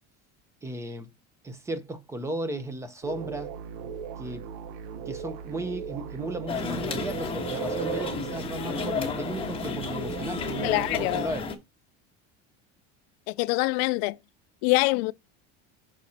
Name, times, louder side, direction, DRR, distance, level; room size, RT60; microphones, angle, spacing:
voice 1, 0.6-1.1 1.4-3.5 4.2-4.4 5.1-11.5, right 2 dB, 10° right, 0.7 m, -35 dB
sound 1, 3.0-11.2, right 7 dB, 75° right, 0.9 m, -37 dB
sound 2, 6.5-11.5, left 5 dB, 20° left, 1.3 m, -33 dB
voice 2, 10.6-11.3 13.3-14.2 14.6-15.1, left 23 dB, 90° left, 0.5 m, -25 dB
6.2 x 4.1 x 4.2 m
cardioid pair, 170°, 29 cm